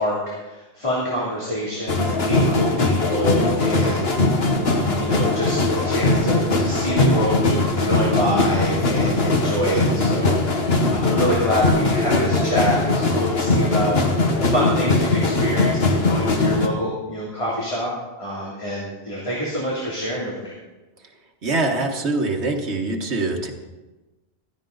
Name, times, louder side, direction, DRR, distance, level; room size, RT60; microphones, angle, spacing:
voice 1, 0.0-10.4 10.9-17.9 18.2-20.5, equal, 30° left, -6 dB, 3.1 m, -26 dB
sound 1, 1.9-16.7, left 2 dB, 65° left, 1.6 m, -20 dB
voice 2, 21.4-23.5, right 2 dB, 80° right, 3 dB, 1.7 m, -23 dB
15.0 x 13.5 x 4.0 m, 1.1 s
omnidirectional pair, 1.1 m